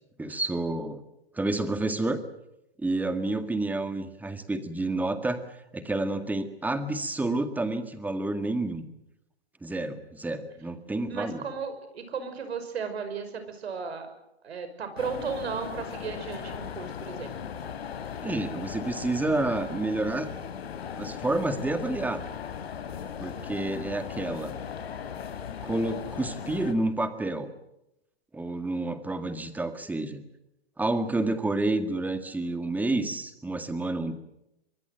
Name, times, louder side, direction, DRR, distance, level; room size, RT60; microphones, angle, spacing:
voice 1, 0.2-1.0 1.3-2.2 2.8-5.4 5.7-8.8 9.6-11.5 18.2-20.3 21.0-22.2 23.2-24.5 25.6-27.5 28.3-30.2 30.8-34.1, right 2 dB, 5° right, 9 dB, 1.8 m, -29 dB
voice 2, 11.1-14.1 14.4-17.3, right 6 dB, 75° right, 9 dB, 5.6 m, -35 dB
sound 1, 15.0-26.7, left 8 dB, 70° left, 3.6 m, -38 dB
24.0 x 21.5 x 8.0 m, 0.87 s
hypercardioid pair, 135°, 32 cm